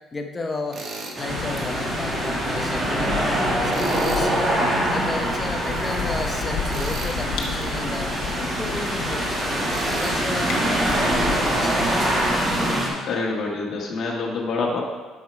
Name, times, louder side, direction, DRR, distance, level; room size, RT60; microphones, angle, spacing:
voice 1, 0.1-0.8 1.2-3.3 3.6-4.3 4.9-9.7 10.0-10.6 11.0-11.8, left 3 dB, 20° left, 4 dB, 0.8 m, -33 dB
Tools, 0.7-1.2 3.7-4.3 6.7-7.2 9.7-10.2, right 3 dB, 40° right, 1.1 m, -35 dB
sound 1, 1.1-12.9, right 1 dB, 20° right, 1.9 m, -24 dB
sound 2, 1.3-12.8, left 5 dB, 90° left, 1.2 m, -33 dB
voice 2, 12.6-14.8, left 3 dB, 50° left, -2 dB, 1.5 m, -27 dB
8.1 x 6.3 x 4.8 m, 1.3 s
cardioid pair, 150°, 0 cm